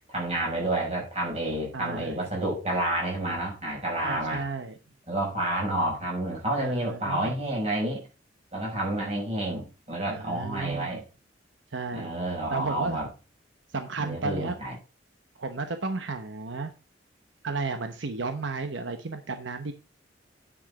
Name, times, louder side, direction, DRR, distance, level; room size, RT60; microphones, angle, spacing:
voice 1, 0.1-4.4 5.1-8.0 8.5-11.0 11.9-13.1 14.0-14.7, right 1 dB, 35° right, -2 dB, 6.1 m, -29 dB
voice 2, 1.7-2.3 4.0-4.7 6.6-7.4 10.1-11.0 11.7-12.1 12.5-13.0 13.7-14.6 15.4-16.7 17.4-19.7, right 3 dB, 80° right, 7 dB, 0.9 m, -33 dB
9.3 x 6.3 x 4.8 m, 0.31 s
head